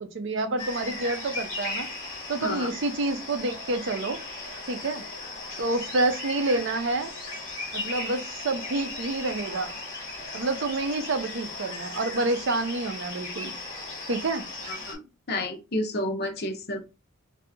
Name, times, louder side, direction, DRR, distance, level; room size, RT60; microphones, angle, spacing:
voice 1, 0.0-1.9 2.3-4.2 4.7-5.0 5.6-7.1 7.7-9.7 10.3-13.5 14.1-14.4, right 2 dB, 60° right, 9 dB, 0.5 m, -28 dB
sound 1, 0.6-15.0, left 2 dB, 25° left, 1.5 m, -37 dB
voice 2, 15.3-16.9, left 1 dB, 50° left, 4 dB, 0.7 m, -30 dB
3.3 x 2.6 x 2.6 m, 0.28 s
head